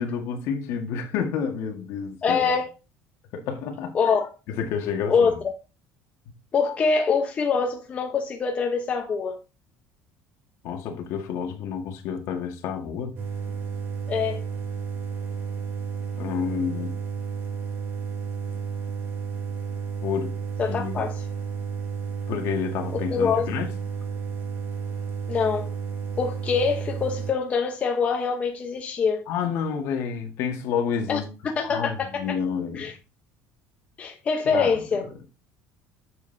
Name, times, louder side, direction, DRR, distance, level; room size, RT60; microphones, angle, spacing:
voice 1, 0.0-2.5 3.3-4.0 4.5-5.4 10.6-13.2 16.2-16.9 20.0-20.4 20.7-21.0 22.3-23.7 29.3-31.2 31.7-32.9 34.5-35.1, left 7 dB, 55° left, 1.8 m, -29 dB
voice 2, 2.2-2.7 3.9-4.3 5.1-5.3 6.5-9.4 14.1-14.4 20.6-21.2 23.1-23.5 25.3-25.7 26.2-29.2 31.1-31.2 31.6-32.4 32.8-32.9 34.0-35.0, left 5 dB, 25° left, 1.0 m, -24 dB
sound 1, 13.2-27.3, right 6 dB, 45° right, 2.4 m, -32 dB
9.3 x 7.1 x 2.8 m
cardioid pair, 165°, 6 cm